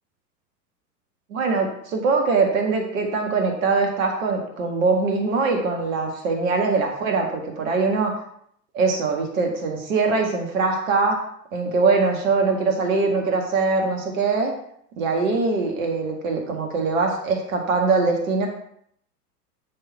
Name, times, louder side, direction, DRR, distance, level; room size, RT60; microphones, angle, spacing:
voice 1, 1.3-8.1 8.7-11.2 11.5-14.5 15.0-18.5, right 4 dB, 55° right, 2 dB, 1.6 m, -22 dB
10.5 x 3.8 x 4.6 m, 0.68 s
figure-of-eight pair, 95°, 49 cm